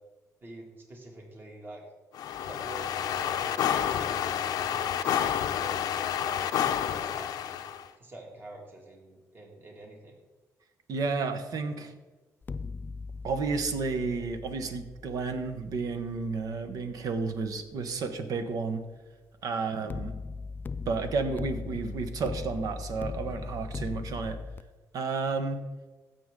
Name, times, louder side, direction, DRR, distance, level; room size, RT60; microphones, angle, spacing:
voice 1, 0.4-1.8 2.5-5.8 6.2-7.6 8.0-10.2, right 2 dB, 35° right, 0 dB, 2.3 m, -47 dB
sound 1, 2.1-7.8, left 9 dB, 80° left, 0.6 m, -29 dB
voice 2, 10.9-11.9 13.2-18.8 19.4-20.1 20.8-24.4 24.9-25.6, right 4 dB, 70° right, 8 dB, 1.1 m, -31 dB
sound 2, 12.4-17.5 19.9-24.6, left 4 dB, 30° left, 0.4 m, -39 dB
15.5 x 6.9 x 3.8 m, 1.2 s
cardioid pair, 105°, 6 cm